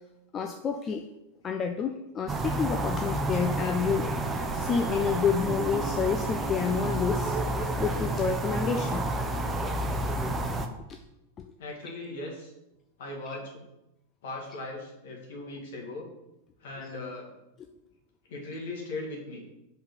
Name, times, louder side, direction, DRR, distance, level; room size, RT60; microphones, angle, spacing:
voice 1, 0.3-1.0 1.4-4.1 4.5-7.4 7.8-9.1 10.9-11.0, left 6 dB, 25° left, 5 dB, 0.4 m, -29 dB
sound 1, 2.3-10.7, right 2 dB, 15° right, 0.7 m, -30 dB
voice 2, 11.6-12.5 13.0-13.6 14.2-16.1 16.6-17.3 18.3-19.4, left 2 dB, 55° left, -1 dB, 1.9 m, -38 dB
5.3 x 4.1 x 5.8 m, 0.91 s
figure-of-eight pair, 90°, 0 cm